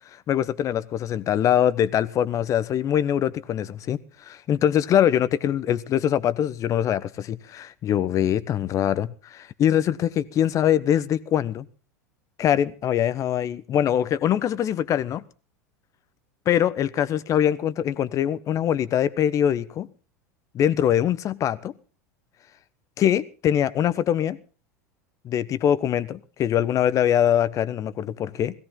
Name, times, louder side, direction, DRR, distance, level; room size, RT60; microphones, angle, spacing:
voice 1, 0.3-4.0 4.2-11.7 12.4-15.2 16.5-19.9 20.5-21.7 23.0-24.4 25.2-28.5, left 10 dB, 35° left, 1.2 m, -23 dB
18.5 x 16.5 x 3.8 m
hypercardioid pair, 85°, 9 cm